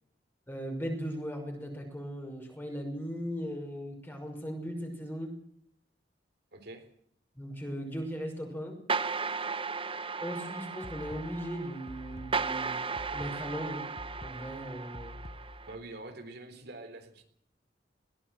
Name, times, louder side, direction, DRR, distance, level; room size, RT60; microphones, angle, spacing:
voice 1, 0.5-5.3 7.4-8.8 10.2-12.8 13.1-13.9 14.2-15.2, equal, 10° left, 3 dB, 5.8 m, -38 dB
voice 2, 6.5-6.9 15.7-17.2, right 2 dB, 65° right, 6 dB, 3.8 m, -45 dB
sound 1, 8.9-15.8, right 4 dB, 30° right, 1.0 m, -36 dB
sound 2, 10.8-15.8, left 1 dB, 35° left, 1.0 m, -47 dB
21.5 x 17.5 x 7.8 m, 0.67 s
head